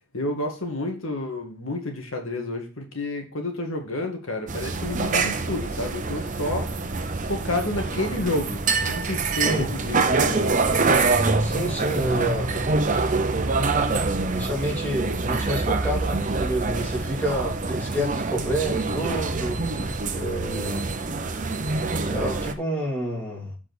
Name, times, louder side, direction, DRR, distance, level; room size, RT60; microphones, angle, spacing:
voice 1, 0.1-6.7 7.3-10.5, left 2 dB, 80° left, 3 dB, 2.1 m, -30 dB
sound 1, 4.5-22.5, right 3 dB, 40° right, 0.8 m, -25 dB
voice 2, 9.4-9.7 11.4-12.6 14.3-19.6 20.1-20.9 22.0-23.6, right 1 dB, 10° left, -3 dB, 3.3 m, -29 dB
7.5 x 4.8 x 6.1 m, 0.34 s
head